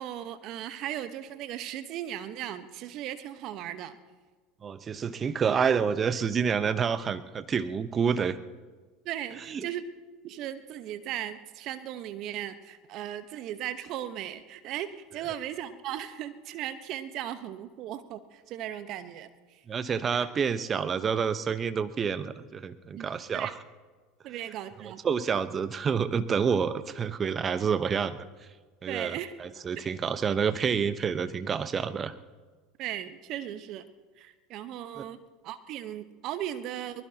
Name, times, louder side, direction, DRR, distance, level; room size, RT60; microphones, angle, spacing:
voice 1, 0.0-4.0 9.0-9.8 10.2-19.6 22.9-23.1 23.3-23.5 24.2-25.0 28.8-29.3 32.8-33.9 34.2-37.1, right 11 dB, 55° right, 10 dB, 1.2 m, -37 dB
voice 2, 4.6-8.4 9.5-9.6 19.7-23.6 24.8-28.2 28.8-32.1 35.0-35.1, right 6 dB, 30° right, 12 dB, 1.0 m, -28 dB
23.0 x 20.5 x 2.9 m, 1.4 s
hypercardioid pair, 80°, 0 cm